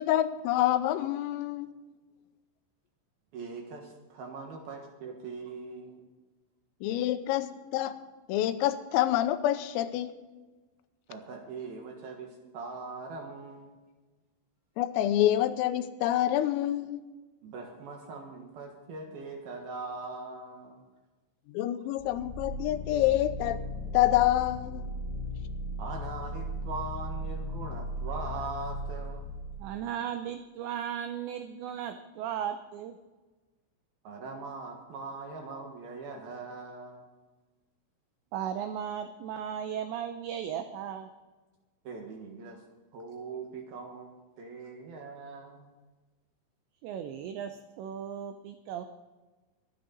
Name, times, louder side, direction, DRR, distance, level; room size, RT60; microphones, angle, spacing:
voice 1, 0.0-1.7 6.8-7.9 8.3-10.1 14.8-17.0 21.5-23.6 23.9-24.8, left 13 dB, 85° left, 11 dB, 3.4 m, -27 dB
voice 2, 3.3-6.1 11.1-13.8 17.4-20.8 25.8-29.3 34.0-37.0 41.8-42.6 42.9-45.7, right 4 dB, 65° right, 2 dB, 2.7 m, -41 dB
sound 1, 22.0-29.8, equal, 5° right, 3.1 m, -37 dB
voice 3, 29.6-33.0 38.3-41.1 46.8-48.9, right 9 dB, 85° right, 8 dB, 2.5 m, -36 dB
24.0 x 9.9 x 4.0 m, 1.2 s
omnidirectional pair, 6.0 m